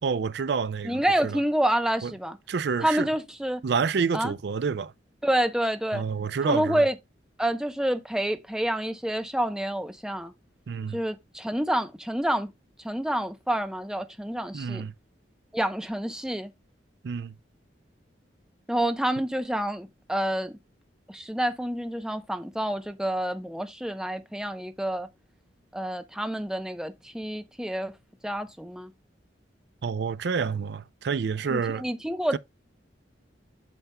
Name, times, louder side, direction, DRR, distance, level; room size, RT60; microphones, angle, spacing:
voice 1, 0.0-1.4 2.0-2.1 2.5-3.1 3.6-4.9 5.9-6.9 10.7-11.0 14.5-14.9 17.0-17.3 29.8-31.8 32.3-32.4, right 5 dB, 60° right, 0.4 m, -28 dB
voice 2, 0.8-2.4 2.8-3.6 4.1-4.3 5.2-6.0 6.4-6.9 7.4-10.3 10.9-12.5 12.8-14.8 15.5-16.5 18.7-20.5 21.1-25.1 25.7-27.9 28.2-28.9 31.5-32.4, right 1 dB, 5° right, 0.7 m, -28 dB
9.1 x 6.8 x 2.2 m
head